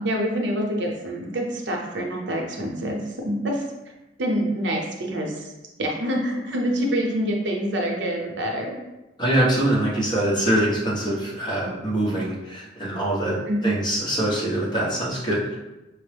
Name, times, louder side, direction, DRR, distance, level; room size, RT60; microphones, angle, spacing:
voice 1, 0.0-3.6 4.2-5.5 5.8-8.8 13.5-13.7, equal, 75° right, 0 dB, 0.7 m, -26 dB
voice 2, 9.2-13.4 13.6-15.6, right 1 dB, 25° left, -7 dB, 1.1 m, -23 dB
5.1 x 2.0 x 3.3 m, 1.0 s
head